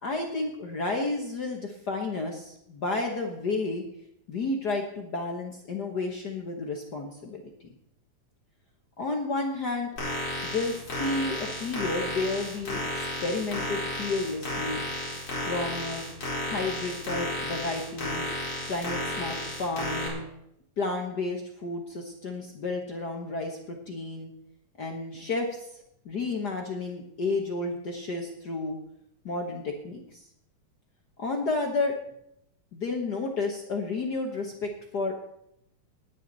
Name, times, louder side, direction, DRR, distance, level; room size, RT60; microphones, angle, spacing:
voice 1, 0.0-3.8 4.3-7.5 9.0-9.9 10.4-14.8 15.4-16.0 16.5-18.3 18.7-20.3 20.8-24.3 24.8-25.8 26.0-28.8 29.2-30.2 31.2-31.9 32.7-35.1, left 3 dB, 65° left, 2 dB, 1.0 m, -31 dB
sound 1, 10.0-20.1, left 1 dB, 40° left, 5.0 m, -33 dB
19.5 x 9.6 x 4.1 m, 0.76 s
omnidirectional pair, 3.7 m